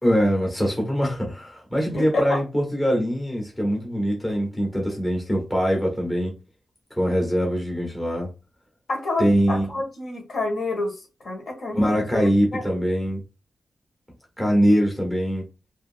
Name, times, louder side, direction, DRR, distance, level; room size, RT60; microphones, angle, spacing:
voice 1, 0.0-6.3 6.9-8.3 9.2-9.7 11.7-13.2 14.4-15.5, equal, 10° left, 0 dB, 0.9 m, -23 dB
voice 2, 1.9-2.4 8.9-10.9 11.2-12.8, left 2 dB, 60° left, 0 dB, 1.3 m, -28 dB
2.6 x 2.4 x 2.6 m, 0.29 s
wide cardioid pair, 135°, 0 cm